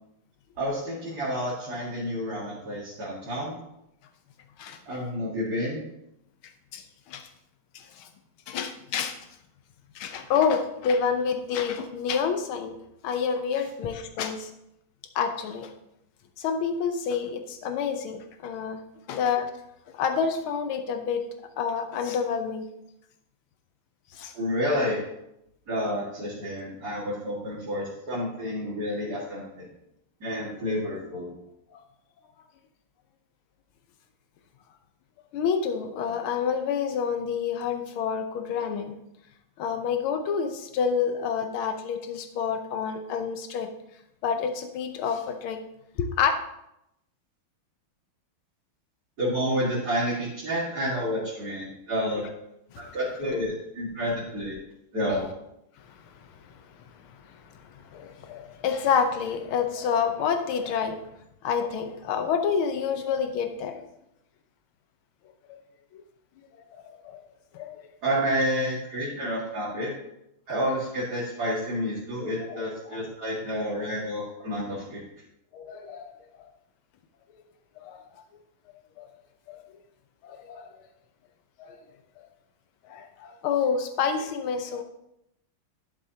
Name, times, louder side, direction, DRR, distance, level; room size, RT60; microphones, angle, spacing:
voice 1, 0.6-3.6 4.9-5.8 24.3-25.0 25.7-29.7 30.2-31.3 49.2-52.2 52.8-54.6 54.9-55.3 68.0-69.9 70.5-75.0, equal, 50° right, -7 dB, 2.5 m, -29 dB
voice 2, 6.7-7.2 7.7-8.1 8.5-9.2 9.9-12.8 13.0-14.5 15.1-15.7 16.4-18.8 19.1-19.5 20.0-21.3 21.6-22.6 24.1-24.3 31.7-31.8 35.3-38.9 39.6-43.7 44.2-45.6 46.0-46.3 52.7-52.9 57.7-61.0 61.4-63.8 65.5-65.6 66.7-67.2 67.5-67.9 72.4-73.3 75.5-76.1 77.8-78.0 79.0-79.1 79.5-79.6 80.2-80.7 81.6-81.8 82.9-84.8, left 6 dB, 80° left, 6 dB, 1.7 m, -28 dB
10.5 x 7.3 x 2.8 m, 0.83 s
omnidirectional pair, 2.3 m